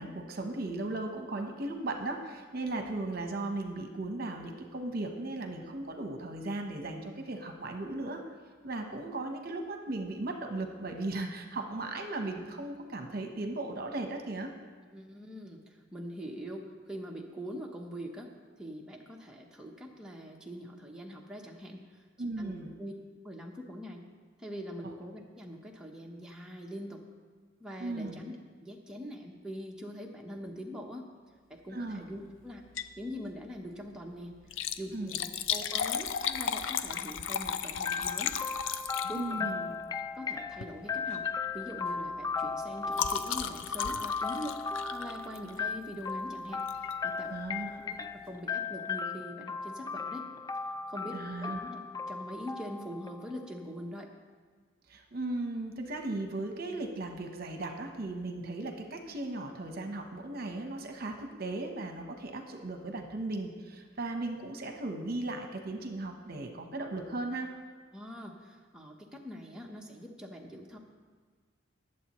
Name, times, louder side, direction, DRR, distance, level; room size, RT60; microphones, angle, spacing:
voice 1, 0.0-8.2 8.6-14.5 22.2-22.7 24.8-24.9 27.8-28.2 31.7-32.1 34.9-35.2 39.1-39.7 47.3-47.9 51.1-51.6 54.9-67.5, right 2 dB, 50° right, 4 dB, 1.0 m, -37 dB
voice 2, 14.9-18.3 18.6-22.5 22.8-22.9 23.2-24.0 24.4-27.0 27.6-28.3 28.6-31.1 31.5-32.6 33.0-34.3 34.8-38.3 39.1-39.5 40.1-41.3 41.5-44.6 44.9-47.3 47.8-50.2 50.6-51.8 52.1-54.1 67.9-70.8, equal, 5° right, -1 dB, 0.9 m, -43 dB
Liquid, 32.6-33.0 33.4-33.5 34.4-39.5 40.5-40.8 41.1-41.4 41.7-45.7 46.7-46.9 47.5-47.6 47.8-47.9, left 8 dB, 80° left, 0.5 m, -35 dB
sound 1, 37.9-53.6, left 5 dB, 20° left, 0.3 m, -37 dB
20.0 x 7.5 x 3.1 m, 1.5 s
head